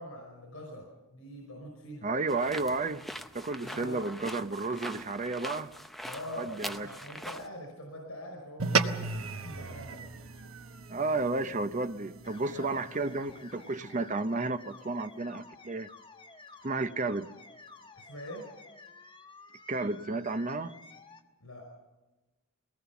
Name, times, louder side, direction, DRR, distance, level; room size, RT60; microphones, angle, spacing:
voice 1, 0.0-2.1 3.6-4.1 6.0-10.0 12.5-12.8 17.9-18.5 21.4-21.7, left 1 dB, 90° left, 5.0 m, -44 dB
voice 2, 2.0-3.0 3.3-5.7 6.4-6.9 10.9-15.9 16.6-17.3 19.7-20.7, right 3 dB, 35° right, 0.7 m, -32 dB
sound 1, 2.3-7.5, equal, ahead, 0.7 m, -43 dB
sound 2, 8.6-13.2, right 4 dB, 70° right, 1.1 m, -34 dB
sound 3, 12.2-21.2, left 3 dB, 25° left, 1.2 m, -52 dB
22.0 x 18.5 x 7.1 m
head